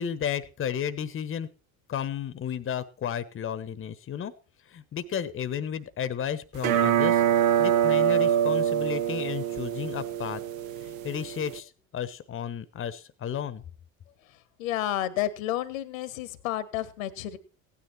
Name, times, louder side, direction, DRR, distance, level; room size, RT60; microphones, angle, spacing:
voice 1, 0.0-1.5 1.9-4.3 4.7-7.2 7.6-10.4 10.8-13.6, left 8 dB, 30° left, 16 dB, 1.2 m, -33 dB
sound 1, 6.6-11.6, right 9 dB, 65° right, 1.3 m, -25 dB
voice 2, 14.6-17.4, left 12 dB, 65° left, 17 dB, 1.5 m, -31 dB
16.5 x 9.9 x 4.4 m, 0.34 s
figure-of-eight pair, 65°, 43 cm